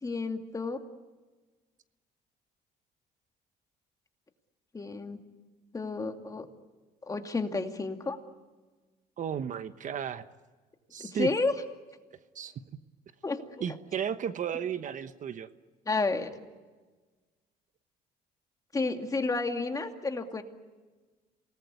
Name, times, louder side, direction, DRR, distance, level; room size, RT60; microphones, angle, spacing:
voice 1, 0.0-0.8 4.7-5.2 5.7-6.5 7.1-8.2 11.0-11.5 13.2-13.4 15.9-16.3 18.7-20.4, left 3 dB, 20° left, 5 dB, 2.4 m, -31 dB
voice 2, 9.2-10.2 10.9-11.3 12.3-12.5 13.6-15.5, right 8 dB, 50° right, 11 dB, 1.1 m, -34 dB
28.0 x 19.5 x 9.6 m, 1.3 s
cardioid pair, 110°, 17 cm